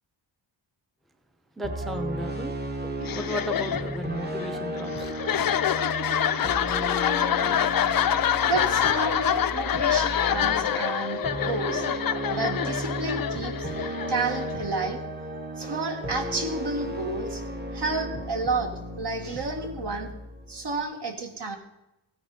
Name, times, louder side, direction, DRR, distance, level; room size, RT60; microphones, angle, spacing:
voice 1, 1.6-2.6 3.1-5.5, equal, ahead, 6 dB, 0.7 m, -35 dB
sound 1, 1.6-20.8, equal, 20° right, 1.1 m, -34 dB
sound 2, 3.0-14.7, left 9 dB, 50° left, 0.5 m, -26 dB
voice 2, 8.4-11.9 12.3-13.7 14.1-15.0 15.6-17.4 17.7-20.1 20.5-21.6, right 3 dB, 60° right, 3 dB, 1.9 m, -31 dB
15.5 x 9.6 x 4.2 m, 0.89 s
wide cardioid pair, 125°, 47 cm